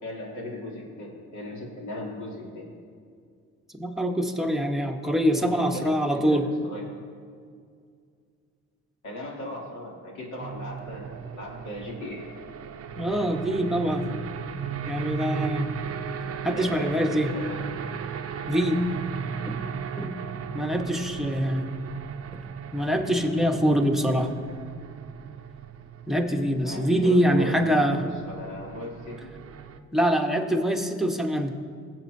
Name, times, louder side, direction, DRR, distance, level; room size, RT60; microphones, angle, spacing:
voice 1, 0.0-2.7 5.4-6.9 9.0-12.2 16.5-17.6 26.6-29.3, equal, 70° left, -3 dB, 2.7 m, -38 dB
voice 2, 3.8-6.4 13.0-14.1 14.9-15.8 16.4-17.3 18.5-18.9 19.5-19.6 20.0-20.1 20.5-21.7 22.7-24.3 26.1-28.0 29.9-31.5, equal, ahead, 2 dB, 1.0 m, -24 dB
sound 1, 10.4-29.8, right 6 dB, 50° right, 0.6 m, -36 dB
19.5 x 7.8 x 2.7 m, 2.2 s
cardioid pair, 90°, 30 cm